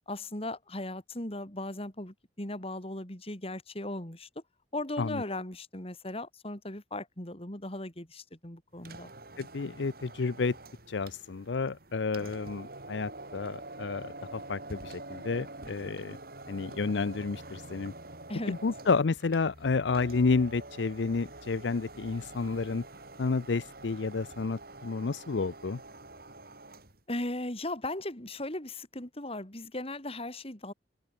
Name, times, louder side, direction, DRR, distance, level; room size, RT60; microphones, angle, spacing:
voice 1, 0.1-4.4 4.7-9.1 18.3-18.5 27.1-30.7, left 1 dB, 35° left, 3.8 m, -37 dB
sound 1, 8.7-27.0, right 2 dB, 55° right, 7.3 m, -46 dB
voice 2, 9.4-10.6 10.9-16.2 16.5-17.9 18.5-22.8 23.2-25.8, left 4 dB, 80° left, 0.6 m, -30 dB
open air
head